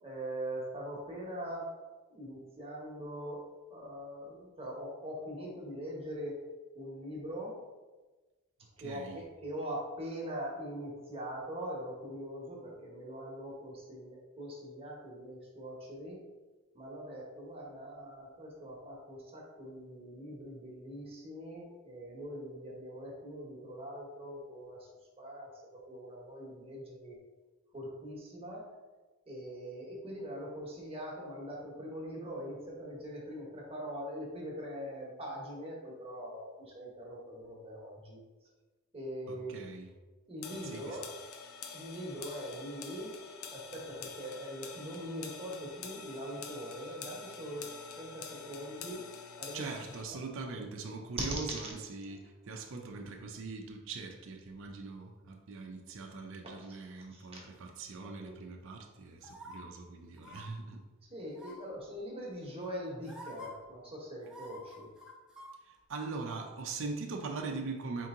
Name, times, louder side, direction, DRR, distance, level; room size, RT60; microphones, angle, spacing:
voice 1, 0.0-1.7 2.1-3.4 3.7-6.4 6.7-7.6 8.8-16.2 16.7-24.9 25.2-27.2 27.7-28.7 29.3-38.2 38.9-39.6 40.3-41.1 41.7-43.2 43.5-47.7 48.0-49.0 49.4-49.6 50.1-50.2 51.3-51.4 56.4-56.7 57.1-57.3 58.2-58.4 61.1-64.9, equal, 25° right, -3 dB, 1.0 m, -42 dB
voice 2, 8.8-9.2 39.3-39.9 40.5-41.0 49.5-60.8 65.6-68.1, right 4 dB, 65° right, 2 dB, 0.5 m, -42 dB
sound 1, 40.4-50.0, left 6 dB, 85° left, 0.5 m, -47 dB
sound 2, 59.2-59.6 60.2-60.4 61.3-61.7 62.6-62.7 63.1-63.5 64.2-65.5 65.8-65.9, left 1 dB, 5° right, 0.7 m, -48 dB
4.4 x 2.8 x 3.6 m, 1.2 s
head